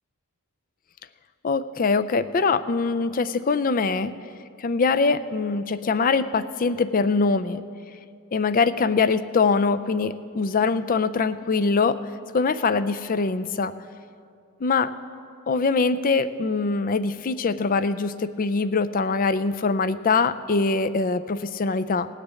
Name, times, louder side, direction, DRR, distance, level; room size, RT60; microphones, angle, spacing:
voice 1, 1.4-4.1 4.6-7.6 8.3-12.0 12.3-13.7 14.6-14.9 15.5-22.1, left 4 dB, 40° left, 13 dB, 0.4 m, -23 dB
18.5 x 6.6 x 8.2 m, 2.3 s
head